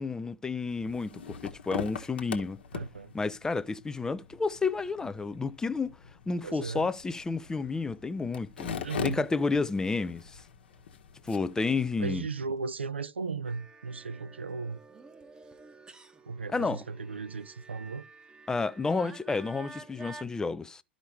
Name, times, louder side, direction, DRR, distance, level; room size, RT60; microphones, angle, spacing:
voice 1, 0.0-2.6 3.1-6.0 6.3-8.7 9.0-10.4 11.2-12.2 16.5-16.8 18.5-20.8, left 4 dB, 10° left, 0.4 m, -31 dB
sound 1, 0.7-11.8, left 7 dB, 65° left, 1.2 m, -42 dB
voice 2, 2.7-3.1 6.4-6.9 8.8-9.2 12.0-14.8 16.2-18.0, right 4 dB, 80° right, 0.4 m, -36 dB
sound 2, 13.4-20.2, right 3 dB, 15° right, 0.9 m, -50 dB
12.5 x 5.1 x 3.2 m
figure-of-eight pair, 90°, 6 cm